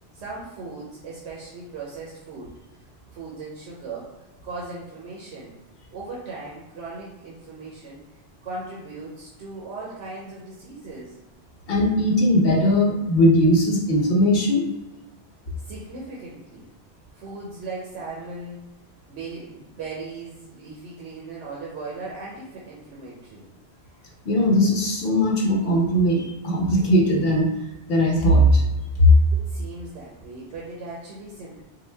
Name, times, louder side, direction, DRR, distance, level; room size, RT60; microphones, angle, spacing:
voice 1, 0.1-2.5 3.1-4.1 4.4-5.5 5.9-8.0 8.4-11.2 15.6-16.7 17.1-18.6 19.1-23.5 29.0-31.6, right 3 dB, 90° right, -4 dB, 1.0 m, -38 dB
voice 2, 11.7-14.7 24.2-27.5 27.9-28.6 29.0-29.1, equal, 60° left, 0 dB, 1.0 m, -19 dB
3.8 x 2.2 x 3.2 m, 1.0 s
omnidirectional pair, 1.1 m